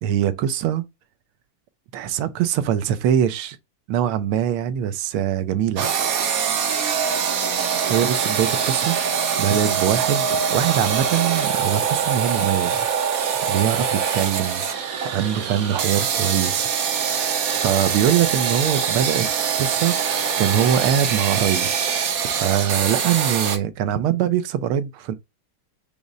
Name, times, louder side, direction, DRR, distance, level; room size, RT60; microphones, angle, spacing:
voice 1, 0.0-0.8 1.9-3.6 3.9-5.9 7.9-12.9 13.5-16.7 17.6-19.3 19.6-21.7 22.4-25.1, right 10 dB, 80° right, 1.4 m, -23 dB
sound 1, 5.8-23.6, right 7 dB, 60° right, 0.9 m, -23 dB
5.3 x 2.0 x 4.6 m
omnidirectional pair, 2.4 m